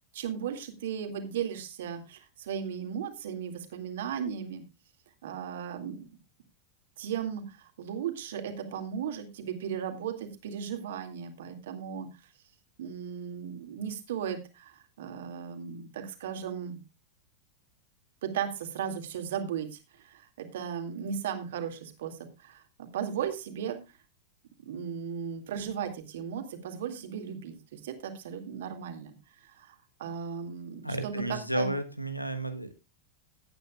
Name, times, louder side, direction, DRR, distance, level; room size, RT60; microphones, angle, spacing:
voice 1, 0.1-4.6 5.2-6.0 7.0-12.1 12.8-16.8 18.2-23.8 24.7-31.7, right 8 dB, 60° right, 6 dB, 2.2 m, -36 dB
voice 2, 30.8-32.7, right 1 dB, 90° left, 10 dB, 1.2 m, -32 dB
17.5 x 9.1 x 2.4 m, 0.25 s
figure-of-eight pair, 90°, 0 cm